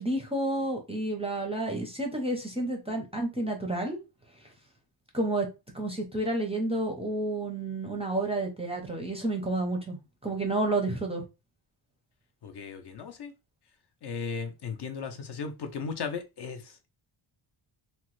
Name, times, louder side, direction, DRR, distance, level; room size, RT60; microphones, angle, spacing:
voice 1, 0.0-4.0 5.1-5.5 5.7-11.2, right 2 dB, 15° right, 2 dB, 0.4 m, -30 dB
voice 2, 12.4-13.3 14.0-16.9, left 5 dB, 55° left, 7 dB, 0.5 m, -36 dB
2.9 x 2.1 x 3.0 m, 0.26 s
wide cardioid pair, 145°, 50 cm